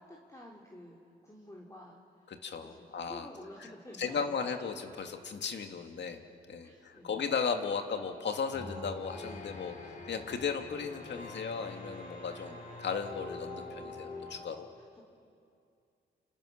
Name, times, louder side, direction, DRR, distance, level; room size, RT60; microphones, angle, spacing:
voice 1, 0.0-2.0 2.6-4.3 6.6-7.2 14.8-15.0, left 1 dB, 15° left, -2 dB, 3.5 m, -51 dB
voice 2, 2.3-3.3 3.6-3.7 4.0-6.2 6.5-14.7, left 6 dB, 70° left, 5 dB, 2.2 m, -36 dB
sound 1, 8.5-14.4, left 2 dB, 45° left, 5.1 m, -44 dB
29.0 x 28.5 x 6.6 m, 2.4 s
cardioid pair, 70°, 19 cm